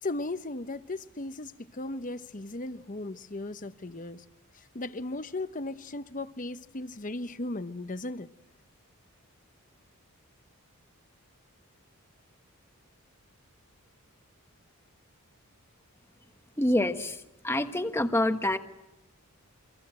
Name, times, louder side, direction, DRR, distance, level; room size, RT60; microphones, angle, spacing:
voice 1, 0.0-4.2 4.5-8.3, left 2 dB, 35° left, 0.9 m, -36 dB
voice 2, 16.6-18.6, left 1 dB, 10° left, 1.2 m, -27 dB
29.0 x 24.0 x 7.7 m
head